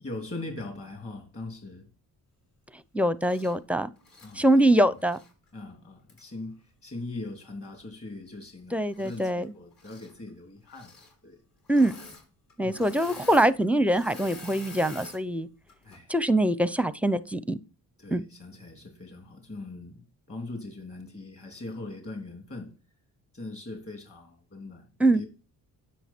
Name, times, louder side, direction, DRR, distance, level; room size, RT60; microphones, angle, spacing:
voice 1, 0.0-1.9 4.2-5.0 5.5-11.0 11.2-11.4 12.6-12.9 15.8-16.1 18.0-22.7 23.3-24.9 25.1-25.3, left 2 dB, 35° left, 3.2 m, -41 dB
voice 2, 2.9-3.9 4.4-5.2 8.7-9.5 11.7-11.9 12.6-15.5 16.1-17.6 18.1-18.2 25.0-25.2, right 1 dB, 5° right, 0.6 m, -23 dB
Engine / Mechanisms, 3.2-3.6 4.0-5.3 6.1-6.2 8.9-9.5 9.7-10.1 10.7-11.1 11.7-12.2 12.5-15.2 15.7-16.0, left 3 dB, 55° left, 3.8 m, -46 dB
10.0 x 6.6 x 4.4 m
cardioid pair, 80°, 42 cm